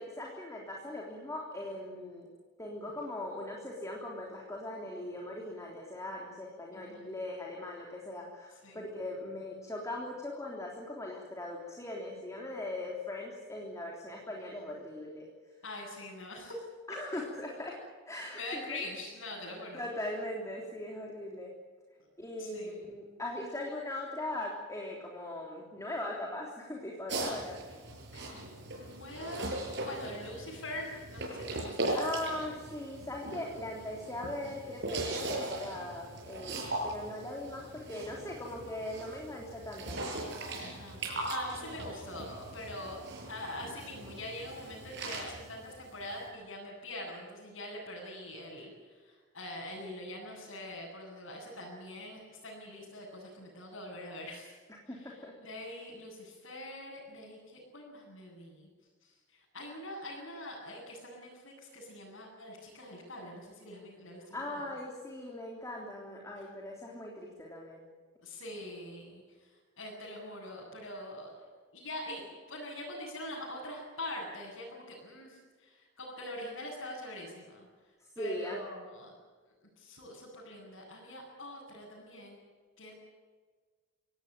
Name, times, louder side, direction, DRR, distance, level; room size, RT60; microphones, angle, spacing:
voice 1, 0.0-2.3 2.6-15.3 16.9-17.8 18.1-18.9 19.7-21.5 22.2-27.6 31.9-40.0 54.9-55.3 64.3-67.8 78.2-78.6, left 1 dB, 15° left, -1 dB, 3.4 m, -40 dB
voice 2, 6.7-7.1 8.6-8.9 15.6-16.6 18.3-19.8 22.4-22.8 28.1-28.5 28.7-29.5 29.8-32.4 40.6-43.0 43.3-48.7 49.0-54.5 54.9-55.1 55.4-58.7 59.5-64.6 68.2-69.2 69.8-71.5 71.7-77.6 78.2-79.1 79.8-82.4 82.8-82.9, left 1 dB, 70° left, -7 dB, 8.0 m, -44 dB
sound 1, 27.1-46.3, right 2 dB, 60° right, 7.4 m, -39 dB
25.5 x 18.5 x 9.1 m, 1.5 s
head